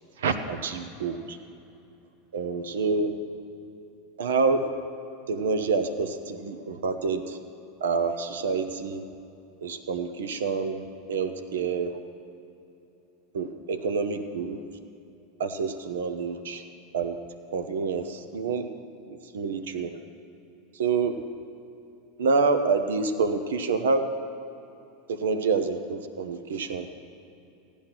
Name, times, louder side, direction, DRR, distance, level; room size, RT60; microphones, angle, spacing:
voice 1, 0.2-1.4 2.3-3.1 4.2-4.7 5.3-7.4 7.8-9.1 9.6-10.8 11.1-12.0 13.3-14.6 15.4-16.6 16.9-17.2 17.5-18.7 19.1-20.0 20.7-21.2 22.2-24.1 25.1-26.9, right 4 dB, 80° right, 8 dB, 0.9 m, -27 dB
15.5 x 10.5 x 6.0 m, 2.9 s
hypercardioid pair, 100°, 0 cm